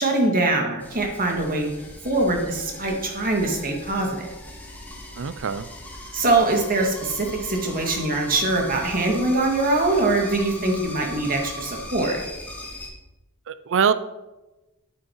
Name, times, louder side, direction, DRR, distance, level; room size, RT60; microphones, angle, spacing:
voice 1, 0.0-1.7 2.0-4.3 6.1-12.2, right 2 dB, 40° right, 2 dB, 2.0 m, -23 dB
sound 1, 0.8-12.9, left 1 dB, 10° left, 1.7 m, -39 dB
voice 2, 5.2-5.7 13.5-13.9, right 6 dB, 60° right, 13 dB, 0.5 m, -23 dB
9.6 x 8.9 x 4.6 m, 1.0 s
head